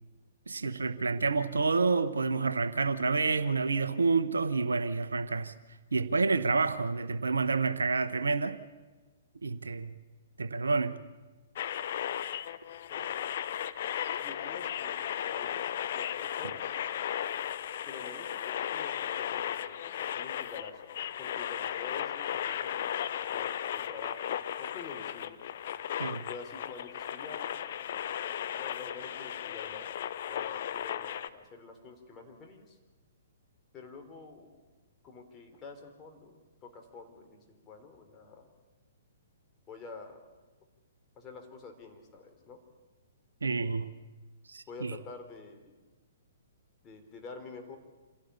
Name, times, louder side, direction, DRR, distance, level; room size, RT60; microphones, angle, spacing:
voice 1, 0.5-5.5 5.9-8.6 9.4-9.9 10.4-11.0 26.0-26.2 43.4-43.9 44.5-44.9, right 4 dB, 75° right, 1.1 m, -29 dB
sound 1, 11.5-31.3, left 10 dB, 50° left, 0.9 m, -35 dB
voice 2, 14.2-16.7 17.8-23.0 23.3-25.4 26.3-29.9 30.3-32.8 33.7-34.6 35.0-38.5 39.7-40.2 41.2-42.6 44.7-45.8 46.8-47.8, left 4 dB, 20° left, 3.6 m, -48 dB
27.0 x 17.0 x 7.1 m
figure-of-eight pair, 120°, 0 cm